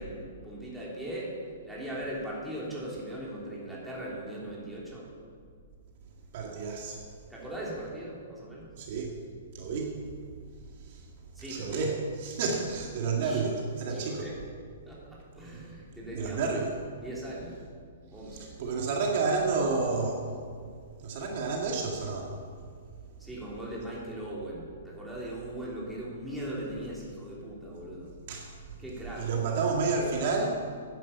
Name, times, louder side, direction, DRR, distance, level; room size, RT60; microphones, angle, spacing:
voice 1, 0.0-1.4 1.6-5.1 7.3-8.7 11.4-11.8 13.2-13.5 13.9-14.3 14.9-16.5 17.0-17.6 18.1-18.5 23.2-28.1 28.8-29.3, right 1 dB, 5° right, -6 dB, 3.4 m, -39 dB
voice 2, 6.3-7.0 8.8-9.1 9.5-10.0 10.8-11.1 11.4-14.3 15.5-15.6 16.1-16.7 18.2-20.3 21.0-22.4 28.3-28.5 29.2-30.5, right 4 dB, 50° right, 0 dB, 2.0 m, -30 dB
11.0 x 10.5 x 7.2 m, 2.1 s
hypercardioid pair, 155°, 0 cm